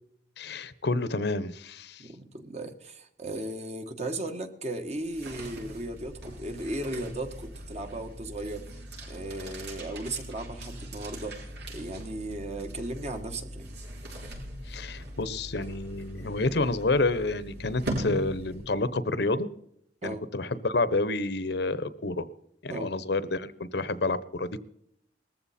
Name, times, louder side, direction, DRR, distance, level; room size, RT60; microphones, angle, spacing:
voice 1, 0.4-2.1 14.7-19.5 20.0-22.3 22.6-24.6, left 2 dB, 65° left, 15 dB, 0.9 m, -29 dB
voice 2, 2.0-8.7 9.1-11.4 11.7-13.7 20.0-20.2 22.7-22.9, right 1 dB, 35° right, 7 dB, 1.5 m, -36 dB
sound 1, 4.9-18.9, right 1 dB, 65° right, 6.7 m, -40 dB
19.5 x 14.5 x 4.3 m, 0.71 s
head